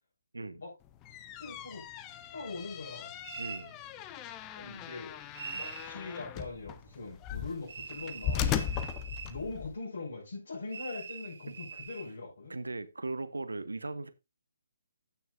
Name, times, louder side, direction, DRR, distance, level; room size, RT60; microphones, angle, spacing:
sound 1, 0.9-9.8, left 9 dB, 20° left, 0.6 m, -38 dB
voice 1, 1.4-1.9 2.3-3.1 4.5-5.2 5.5-8.6 9.3-12.6, left 3 dB, 55° left, 5.7 m, -42 dB
sound 2, 3.2-3.7 5.3-5.9 7.7-9.4 10.7-12.1, right 6 dB, 50° right, 1.3 m, -43 dB
voice 2, 3.4-3.7 11.5-11.6 12.5-14.1, right 2 dB, 70° right, 1.0 m, -38 dB
15.5 x 6.4 x 2.6 m
figure-of-eight pair, 140°, 0 cm